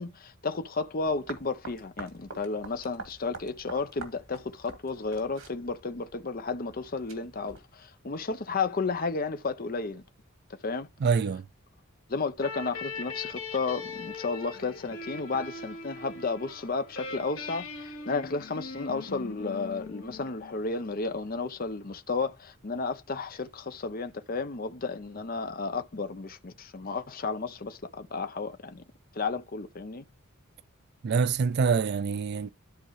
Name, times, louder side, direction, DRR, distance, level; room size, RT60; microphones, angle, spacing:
voice 1, 0.0-10.0 10.6-10.9 12.1-28.8 29.1-30.0, left 4 dB, 45° left, 0.7 m, -33 dB
sound 1, 1.0-7.6, right 4 dB, 80° right, 2.5 m, -47 dB
voice 2, 11.0-11.4 31.0-32.5, right 5 dB, 50° right, 0.3 m, -25 dB
sound 2, 12.4-20.9, left 4 dB, 70° left, 1.9 m, -41 dB
12.5 x 4.5 x 3.1 m
head